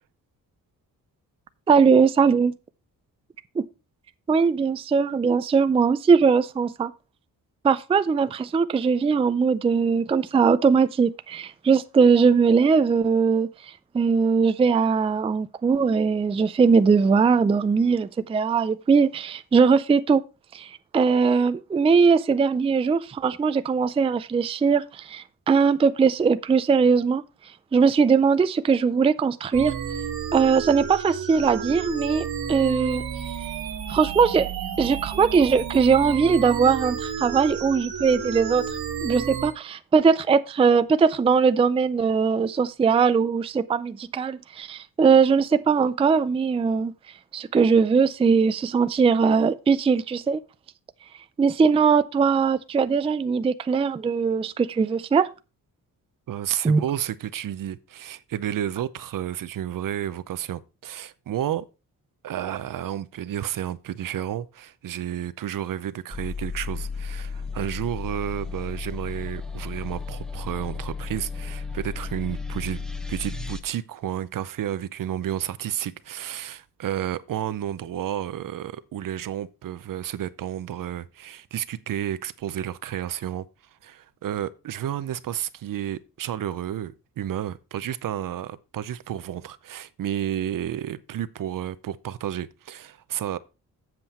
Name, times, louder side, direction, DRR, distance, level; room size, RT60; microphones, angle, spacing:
voice 1, 1.7-2.5 3.6-3.7 4.3-6.9 7.6-20.2 20.5-27.2 27.7-29.7 30.3-33.0 33.9-34.5 34.8-38.7 39.0-46.9 47.3-50.4 51.4-55.3 56.6-56.8, right 5 dB, 15° right, 0.3 m, -20 dB
sound 1, 29.5-39.5, right 7 dB, 85° right, 1.8 m, -32 dB
voice 2, 56.3-61.7 62.2-83.5 83.8-93.4, right 11 dB, 65° right, 0.6 m, -31 dB
sound 2, 66.1-73.6, left 5 dB, ahead, 0.8 m, -34 dB
7.8 x 7.4 x 4.2 m
wide cardioid pair, 135°, 36 cm